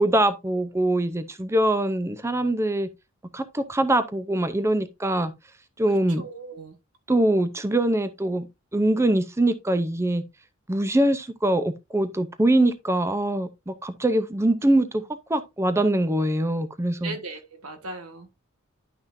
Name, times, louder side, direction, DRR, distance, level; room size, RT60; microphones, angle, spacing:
voice 1, 0.0-2.9 3.3-5.3 5.8-6.2 7.1-8.5 8.7-10.2 10.7-14.9 15.3-17.1, right 1 dB, 15° right, 0.5 m, -23 dB
voice 2, 5.9-6.8 14.6-14.8 17.0-18.3, right 3 dB, 90° right, 1.5 m, -38 dB
10.5 x 6.0 x 2.6 m
head